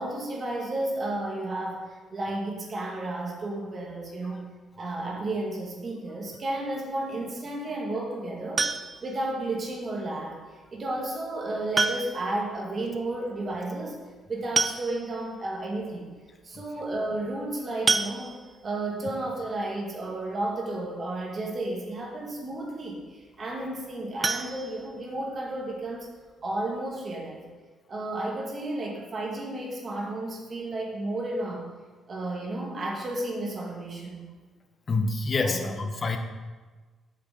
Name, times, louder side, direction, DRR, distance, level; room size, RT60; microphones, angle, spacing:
voice 1, 0.0-4.4 4.8-8.7 9.0-14.0 14.3-16.1 16.4-26.1 26.4-27.5 27.9-31.7 32.1-34.3 35.4-35.6 35.9-36.0, right 2 dB, 45° right, -1 dB, 2.0 m, -32 dB
sound 1, 8.6-9.2 10.7-10.8 11.7-12.4 12.7-12.8 13.1-13.2 14.2-14.3 14.6-15.3 15.8-15.9 16.3-16.4 17.9-18.7 24.2-25.4 25.8-25.9 26.3-26.4 26.8-26.9, right 3 dB, 25° right, 0.4 m, -28 dB
voice 2, 34.9-36.2, left 3 dB, 40° left, 6 dB, 0.9 m, -27 dB
8.2 x 6.7 x 3.9 m, 1.3 s
cardioid pair, 90°, 0 cm